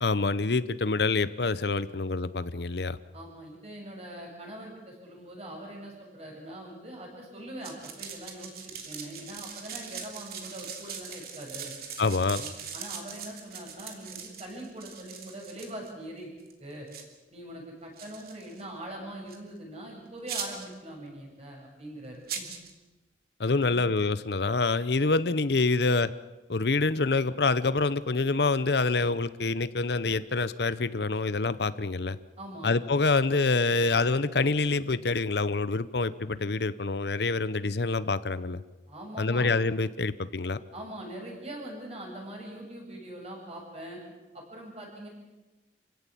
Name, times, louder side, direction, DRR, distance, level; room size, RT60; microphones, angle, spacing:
voice 1, 0.0-3.0 12.0-12.4 23.4-26.1 26.5-32.2 32.6-38.6 39.2-40.6, left 3 dB, 70° left, 15 dB, 0.8 m, -26 dB
voice 2, 3.1-11.7 12.4-16.3 16.6-16.9 17.3-22.5 23.5-23.8 32.4-32.7 38.9-39.5 40.7-44.0 44.3-45.1, right 1 dB, 35° right, 0 dB, 7.6 m, -42 dB
sound 1, 7.6-15.9 16.4-16.5 16.9-17.0 18.0-18.6 19.3-19.4 20.3-20.8 22.3-22.7, right 7 dB, 55° right, 3.1 m, -40 dB
27.5 x 16.5 x 8.5 m, 1.1 s
head